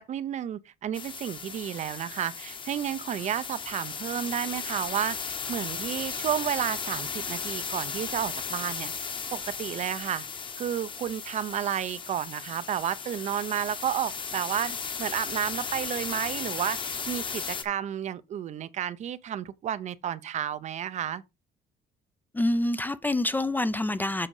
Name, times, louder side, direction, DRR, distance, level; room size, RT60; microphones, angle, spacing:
voice 1, 0.1-10.3 10.6-21.2, right 10 dB, 45° right, 0.6 m, -32 dB
sound 1, 0.9-17.6, left 5 dB, 30° left, 1.1 m, -36 dB
voice 2, 22.3-24.3, left 1 dB, 10° left, 0.5 m, -26 dB
7.7 x 5.0 x 4.7 m
cardioid pair, 140°, 17 cm